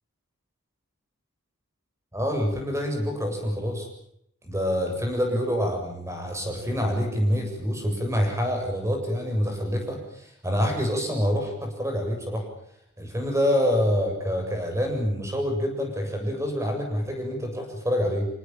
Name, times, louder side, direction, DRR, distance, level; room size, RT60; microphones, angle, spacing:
voice 1, 2.1-3.9 4.4-12.4 13.0-18.3, equal, 15° right, 3 dB, 7.5 m, -26 dB
27.0 x 18.5 x 9.1 m, 0.73 s
head